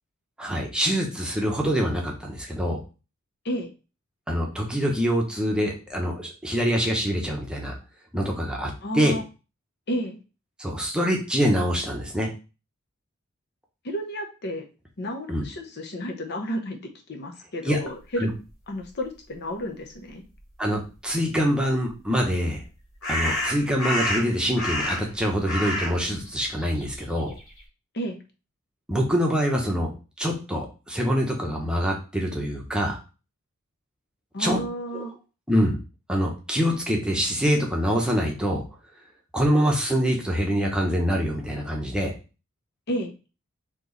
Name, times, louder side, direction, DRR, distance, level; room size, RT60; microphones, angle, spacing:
voice 1, 0.4-2.8 4.3-7.7 8.1-9.2 10.6-12.3 15.3-15.4 17.6-17.8 18.2-18.3 20.6-22.6 23.1-27.3 28.9-29.9 30.2-33.0 34.4-34.6 34.9-35.0 35.5-35.8 36.1-38.6 39.3-42.1, equal, 5° right, -1 dB, 0.9 m, -25 dB
voice 2, 8.8-9.2 9.9-10.2 13.8-14.7 15.0-16.8 17.1-18.3 18.7-20.2 27.9-28.2 34.3-35.1 42.9-43.1, equal, 50° left, 4 dB, 0.7 m, -31 dB
sound 1, 21.9-22.0 23.0-25.2 25.4-27.6, left 1 dB, 70° left, 2.1 m, -28 dB
4.5 x 3.0 x 3.9 m, 0.32 s
head